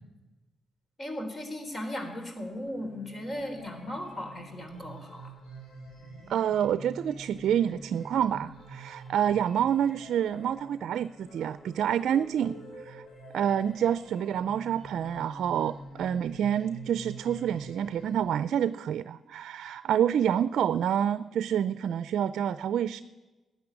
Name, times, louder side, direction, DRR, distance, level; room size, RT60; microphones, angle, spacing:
voice 1, 1.0-5.3, left 1 dB, 30° left, 6 dB, 3.6 m, -37 dB
sound 1, 2.4-18.3, right 1 dB, 90° left, 6.8 m, -47 dB
voice 2, 6.3-12.6 12.9-13.0 13.3-23.0, right 9 dB, 80° right, 14 dB, 0.4 m, -28 dB
13.0 x 9.4 x 10.0 m, 1.1 s
cardioid pair, 80°, 0 cm